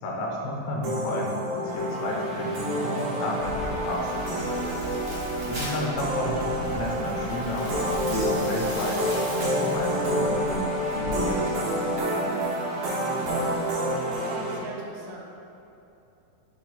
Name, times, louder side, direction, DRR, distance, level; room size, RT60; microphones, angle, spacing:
voice 1, 0.0-4.9 5.5-9.0 9.3-12.6, left 2 dB, 85° left, -1 dB, 2.5 m, -32 dB
sound 1, 0.8-14.6, right 1 dB, 70° right, 2.0 m, -28 dB
sound 2, 1.8-10.9, right 1 dB, 45° right, 1.5 m, -42 dB
Bark, 3.4-11.4, equal, 70° left, 1.7 m, -40 dB
voice 2, 14.0-15.2, right 3 dB, 85° right, -1 dB, 2.6 m, -40 dB
6.2 x 4.1 x 3.9 m, 2.8 s
omnidirectional pair, 4.3 m